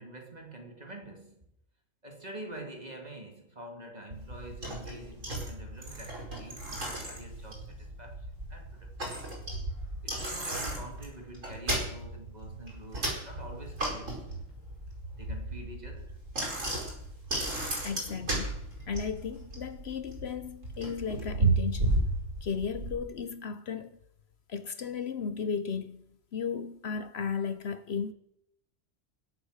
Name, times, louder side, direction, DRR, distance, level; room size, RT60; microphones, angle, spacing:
voice 1, 0.0-1.5 2.0-9.4 10.0-14.2 15.1-16.2, right 1 dB, 35° right, 2.4 m, -46 dB
Bicycle, 4.1-23.0, right 2 dB, 85° right, 5.0 m, -34 dB
voice 2, 17.8-22.1 22.4-24.0 24.5-28.1, left 6 dB, 60° left, 1.0 m, -35 dB
20.5 x 8.1 x 6.5 m
omnidirectional pair, 1.3 m